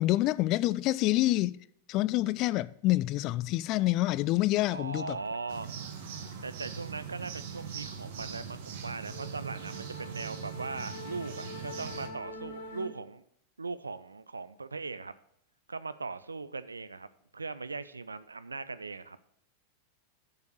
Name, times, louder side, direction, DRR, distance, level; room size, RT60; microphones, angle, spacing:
voice 1, 0.0-1.6 1.9-5.2, left 17 dB, 40° left, 0.3 m, -27 dB
sound 1, 4.3-4.4 4.6-12.9, left 1 dB, 65° left, 1.2 m, -48 dB
voice 2, 4.7-5.8 6.4-13.2 13.6-15.1 15.7-17.1 17.3-19.2, right 4 dB, 80° right, 0.5 m, -39 dB
sound 2, 5.5-12.1, right 7 dB, 55° right, 1.1 m, -41 dB
7.1 x 6.7 x 6.2 m
figure-of-eight pair, 90°, 0 cm